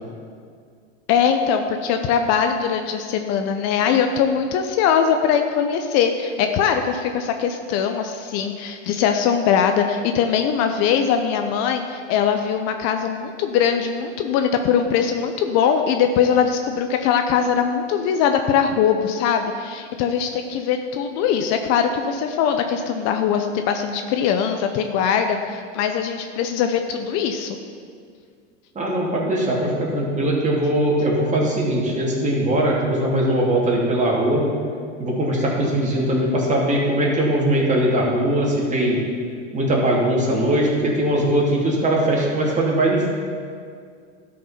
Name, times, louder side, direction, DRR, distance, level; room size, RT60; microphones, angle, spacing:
voice 1, 1.1-27.6, left 7 dB, 45° left, 6 dB, 0.7 m, -21 dB
voice 2, 28.7-34.5 35.0-39.0 39.5-43.1, right 1 dB, 20° right, -3 dB, 2.7 m, -20 dB
12.5 x 5.4 x 5.8 m, 2.1 s
hypercardioid pair, 105°, 36 cm